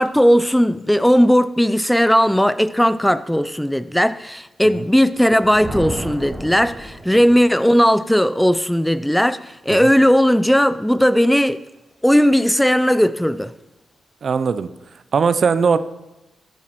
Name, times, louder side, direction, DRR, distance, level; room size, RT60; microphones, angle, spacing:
voice 1, 0.0-11.6 12.0-13.5, equal, 5° left, 0.4 m, -17 dB
Thunder, 5.2-7.5, right 1 dB, 20° right, 3.1 m, -32 dB
voice 2, 14.2-14.7 15.1-15.8, right 5 dB, 60° right, 0.4 m, -19 dB
13.5 x 10.5 x 3.0 m
supercardioid pair, 45°, 0 cm